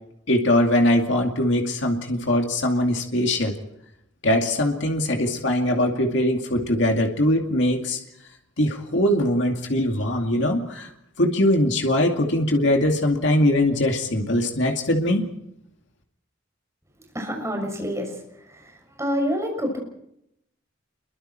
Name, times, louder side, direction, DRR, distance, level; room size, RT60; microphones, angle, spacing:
voice 1, 0.3-3.6 4.2-8.0 8.6-10.9 11.2-15.3, left 1 dB, 65° left, 2 dB, 2.4 m, -21 dB
voice 2, 17.1-18.1 18.5-18.7 19.0-19.8, equal, 15° right, 2 dB, 6.7 m, -27 dB
28.5 x 23.0 x 4.5 m, 0.78 s
head